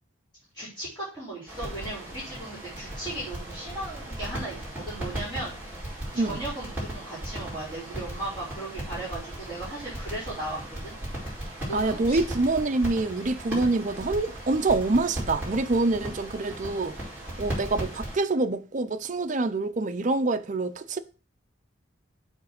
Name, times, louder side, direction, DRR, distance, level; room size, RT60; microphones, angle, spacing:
voice 1, 0.5-5.5 6.1-10.9 11.7-12.4, right 1 dB, 15° left, 3.8 m, -37 dB
sound 1, 1.5-18.2, right 1 dB, 5° right, 4.8 m, -37 dB
voice 2, 11.7-17.0 17.4-21.0, right 2 dB, 40° right, 0.5 m, -26 dB
7.2 x 4.2 x 6.4 m
head